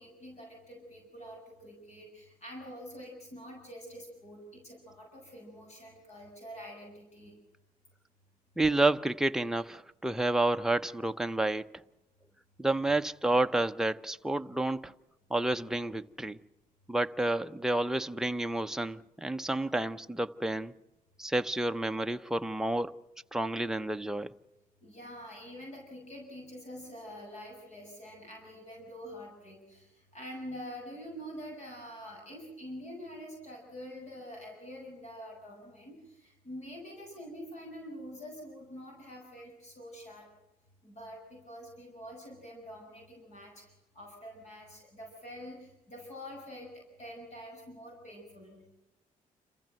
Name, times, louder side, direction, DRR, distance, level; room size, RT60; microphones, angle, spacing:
voice 1, 0.0-7.4 24.8-40.3 40.8-46.7 47.0-48.6, equal, 50° left, 6.8 m, -46 dB
voice 2, 8.6-11.7 12.6-14.9 15.3-16.4 16.9-20.7 21.2-23.0 23.3-24.3, right 2 dB, 5° right, 0.8 m, -30 dB
28.0 x 15.0 x 7.7 m
cardioid pair, 110°, 15 cm